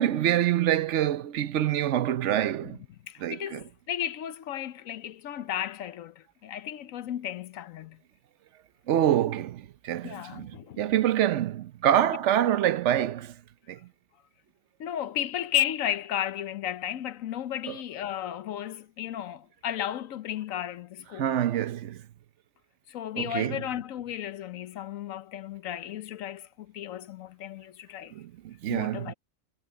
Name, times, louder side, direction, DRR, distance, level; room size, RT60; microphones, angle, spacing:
voice 1, 0.0-2.8 3.2-3.6 8.9-13.3 13.7-13.8 17.7-17.8 21.1-22.0 23.1-23.6 28.1-29.1, right 11 dB, 65° right, 1.0 m, -26 dB
voice 2, 3.1-8.0 10.0-10.9 14.8-21.3 22.9-28.1 28.7-29.1, left 11 dB, 80° left, 1.1 m, -34 dB
omnidirectional pair, 1.4 m